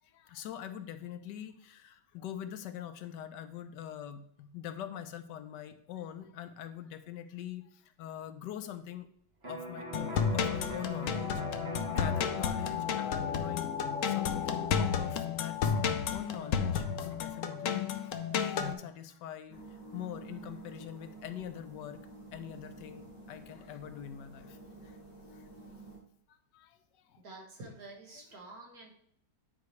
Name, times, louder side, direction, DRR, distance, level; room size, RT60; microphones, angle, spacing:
voice 1, 0.0-9.1 9.4-11.4 11.9-13.7 14.0-15.6 16.1-17.9 18.3-22.0 22.3-24.6 24.8-25.0 25.3-25.4 26.3-26.8 27.0-27.2, left 10 dB, 85° left, 10 dB, 1.2 m, -43 dB
Electric guitar, 9.4-17.1, right 2 dB, 40° right, 1.6 m, -45 dB
sound 1, 9.9-18.7, left 7 dB, 65° left, 0.8 m, -32 dB
voice 2, 10.1-10.5 27.2-28.9, right 2 dB, 60° right, -1 dB, 2.0 m, -49 dB
sound 2, 19.5-26.0, right 2 dB, 15° right, 2.6 m, -50 dB
9.5 x 4.7 x 3.2 m, 0.65 s
omnidirectional pair, 1.8 m